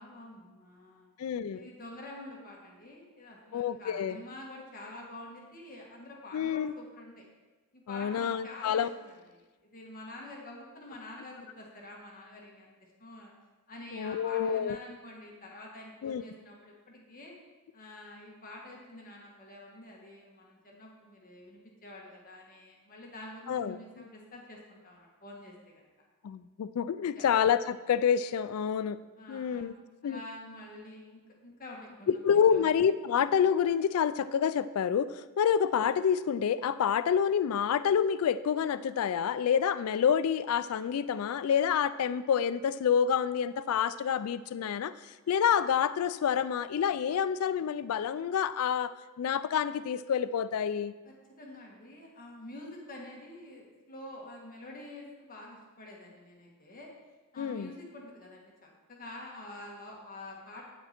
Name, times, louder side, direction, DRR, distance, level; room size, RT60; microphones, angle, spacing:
voice 1, 0.0-1.1 1.5-7.2 7.7-13.3 13.7-17.3 17.7-25.7 27.1-27.3 29.2-29.6 30.0-32.8 51.0-56.9 57.3-60.6, left 1 dB, 40° left, -2 dB, 1.6 m, -47 dB
voice 2, 1.2-1.7 3.5-4.2 6.3-6.7 7.9-8.9 13.9-14.8 16.0-16.2 23.5-23.8 26.2-29.0 29.3-29.7 30.0-30.2 32.1-44.9 45.3-50.9 57.4-57.7, left 8 dB, 75° left, 14 dB, 0.3 m, -28 dB
9.2 x 8.7 x 4.3 m, 1.2 s
head